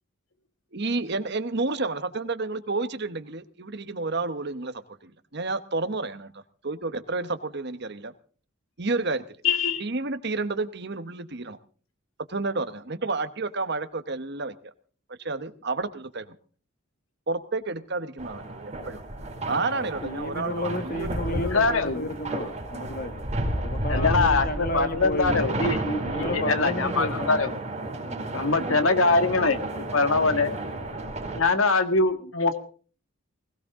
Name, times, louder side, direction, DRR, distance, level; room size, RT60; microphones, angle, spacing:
voice 1, 0.7-8.1 8.8-9.2 9.8-11.6 12.3-14.7 15.2-16.3 17.3-19.0 19.4-21.2 22.7-22.9 28.6-28.8, right 3 dB, 55° right, 11 dB, 1.1 m, -30 dB
voice 2, 9.4-9.8 21.3-22.1 23.9-27.5 28.3-29.6 29.9-30.5 31.4-32.5, left 3 dB, 85° left, 8 dB, 1.9 m, -23 dB
sound 1, 18.2-31.4, right 1 dB, 35° right, 4.0 m, -32 dB
voice 3, 19.6-25.4 26.0-27.4 28.1-28.2, left 1 dB, 45° left, 9 dB, 1.7 m, -33 dB
20.5 x 16.5 x 3.7 m, 0.42 s
head